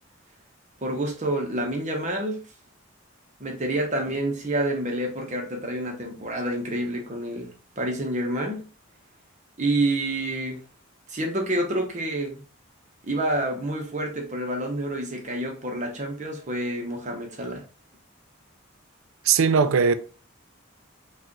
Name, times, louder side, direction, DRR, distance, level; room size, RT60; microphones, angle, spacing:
voice 1, 0.8-2.4 3.4-8.6 9.6-10.6 11.1-12.4 13.0-17.6, right 1 dB, 35° right, 0.9 m, -28 dB
voice 2, 19.2-19.9, right 5 dB, 75° right, 0.4 m, -19 dB
4.7 x 2.4 x 3.0 m
head